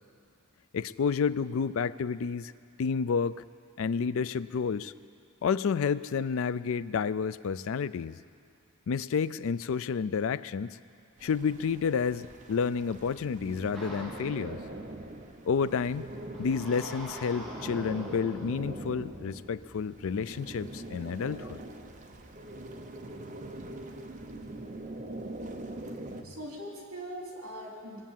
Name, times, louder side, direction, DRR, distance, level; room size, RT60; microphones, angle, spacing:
voice 1, 0.7-2.5 2.8-3.4 3.8-4.9 5.4-8.2 8.9-10.8 11.2-14.6 15.4-16.1 16.4-21.6, left 6 dB, 65° left, 15 dB, 0.4 m, -30 dB
sound 1, 11.2-26.2, right 1 dB, 35° right, 0.9 m, -43 dB
sound 2, 13.7-14.7 16.3-18.7, right 1 dB, 5° left, 2.2 m, -44 dB
voice 2, 25.9-28.0, equal, 65° right, -2 dB, 3.4 m, -42 dB
21.0 x 8.3 x 7.4 m, 2.4 s
head